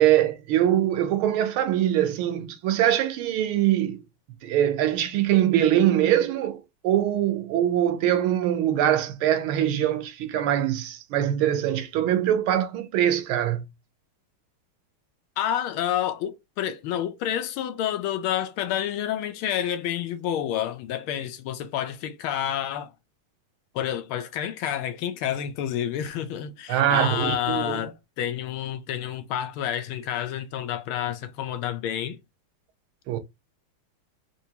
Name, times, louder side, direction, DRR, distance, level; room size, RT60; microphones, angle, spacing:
voice 1, 0.0-4.0 4.4-13.6 26.7-27.8 33.1-33.2, right 11 dB, 75° right, 1.4 m, -23 dB
voice 2, 15.4-22.9 23.7-32.2, left 10 dB, 75° left, 1.4 m, -29 dB
4.5 x 2.6 x 2.8 m
omnidirectional pair, 2.4 m